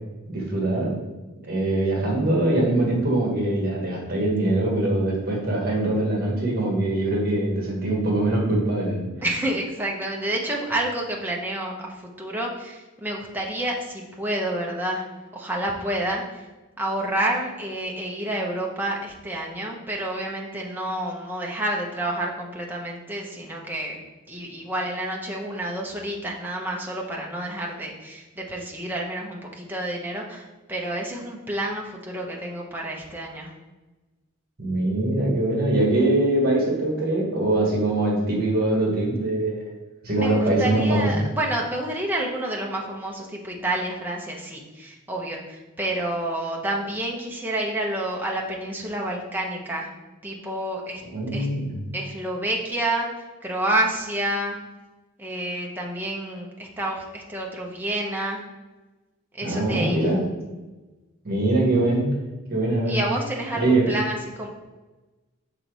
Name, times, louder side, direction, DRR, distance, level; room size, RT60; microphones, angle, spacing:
voice 1, 0.3-1.0 1.5-9.1 34.6-39.7 40.0-41.1 51.1-51.7 59.4-60.2 61.2-62.1 62.5-63.0 63.5-63.9, right 2 dB, 45° right, -2 dB, 1.4 m, -23 dB
voice 2, 9.2-15.1 15.3-16.4 16.8-24.0 24.3-33.5 40.1-49.9 50.2-51.0 51.3-51.5 51.9-53.1 53.4-54.6 55.2-58.4 59.3-60.1 62.9-64.5, right 1 dB, 10° right, -2 dB, 0.8 m, -29 dB
5.9 x 4.0 x 4.7 m, 1.2 s
head